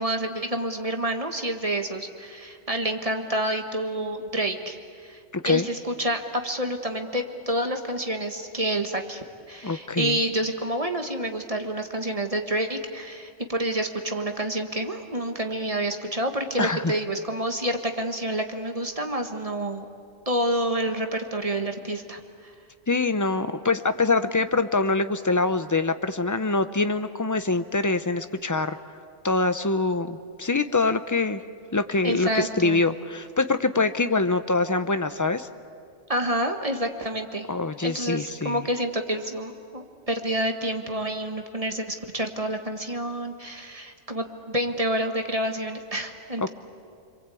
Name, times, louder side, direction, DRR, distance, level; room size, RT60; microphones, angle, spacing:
voice 1, 0.0-5.2 5.4-19.8 20.2-22.5 32.0-32.8 36.1-37.5 37.8-46.5, right 1 dB, 30° right, 5 dB, 1.6 m, -28 dB
voice 2, 5.3-5.7 9.6-10.2 16.6-16.9 22.9-28.8 29.2-31.4 31.7-35.5 37.5-38.6 46.4-46.5, left 3 dB, 20° left, 10 dB, 0.6 m, -24 dB
29.5 x 23.0 x 8.4 m, 2.4 s
omnidirectional pair, 1.3 m